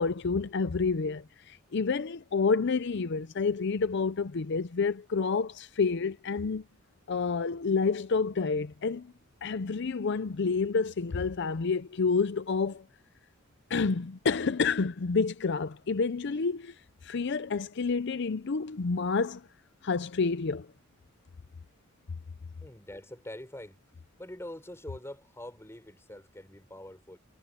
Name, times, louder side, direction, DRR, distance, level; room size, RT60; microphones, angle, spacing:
voice 1, 0.0-6.6 7.1-9.1 9.4-12.8 13.7-19.5 19.8-20.7, left 4 dB, 60° left, 0.6 m, -29 dB
voice 2, 22.6-23.8 24.2-27.2, left 1 dB, 15° left, 6.0 m, -44 dB
head